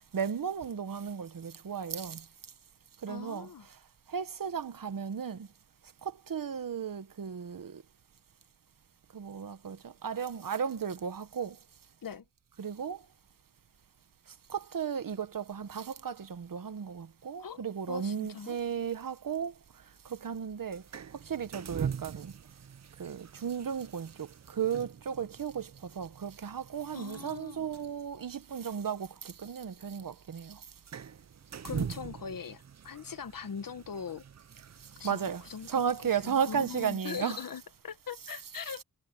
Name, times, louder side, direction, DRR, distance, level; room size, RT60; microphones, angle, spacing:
voice 1, 0.1-2.3 3.0-3.5 4.1-5.5 6.0-7.8 9.1-11.6 12.6-13.0 14.5-19.5 20.0-20.8 21.2-22.3 23.0-30.6 35.0-37.5 38.2-38.8, right 7 dB, 70° right, 1.3 m, -35 dB
voice 2, 3.1-3.7 12.0-12.2 17.4-18.6 26.9-27.7 31.6-34.2 35.0-35.7 36.2-38.8, left 6 dB, 70° left, 1.2 m, -41 dB
sound 1, 18.6-36.9, right 7 dB, 50° right, 0.7 m, -44 dB
wide cardioid pair, 70°, 35 cm